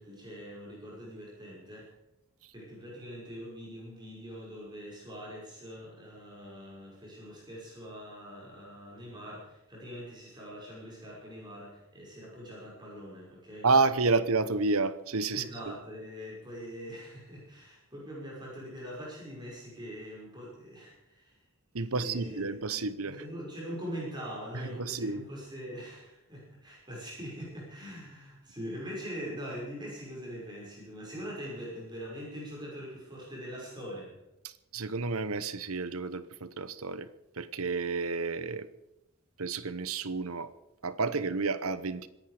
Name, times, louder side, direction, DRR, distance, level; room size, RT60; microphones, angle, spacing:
voice 1, 0.0-1.9 2.5-13.7 15.3-21.4 21.9-34.2, equal, 20° right, -4 dB, 5.9 m, -43 dB
voice 2, 13.6-15.7 21.7-23.2 24.5-25.2 34.4-37.1 37.4-38.7 39.4-40.5 40.8-42.1, right 3 dB, 80° right, 14 dB, 1.0 m, -30 dB
25.0 x 10.5 x 5.0 m, 0.94 s
head